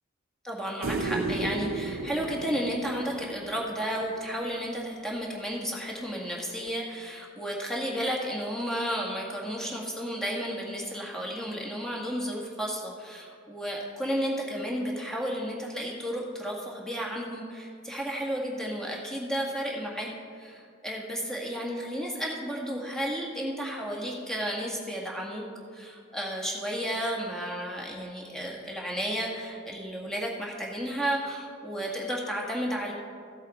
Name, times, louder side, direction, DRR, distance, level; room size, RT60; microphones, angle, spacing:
voice 1, 0.4-25.4 25.7-32.9, equal, 5° left, -2 dB, 1.8 m, -33 dB
sound 1, 0.8-4.1 6.7-6.8, right 3 dB, 80° right, 0.6 m, -33 dB
15.0 x 7.9 x 4.2 m, 2.3 s
head